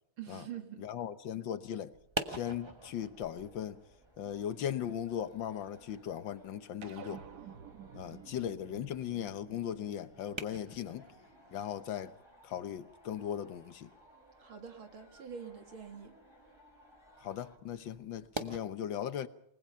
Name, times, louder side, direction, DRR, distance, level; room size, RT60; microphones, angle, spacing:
voice 1, 0.2-0.8 14.4-16.1, right 8 dB, 70° right, 2.8 m, -45 dB
voice 2, 0.8-1.9 2.3-3.8 4.2-7.2 7.9-11.1 11.5-12.1 12.4-13.9 17.2-19.3, left 9 dB, 65° left, 1.7 m, -38 dB
sound 1, 1.9-18.6, right 2 dB, 20° right, 0.9 m, -48 dB
sound 2, 2.3-17.6, equal, 10° left, 5.1 m, -62 dB
sound 3, 6.8-11.5, right 8 dB, 55° right, 1.5 m, -52 dB
28.5 x 20.0 x 5.7 m
omnidirectional pair, 2.4 m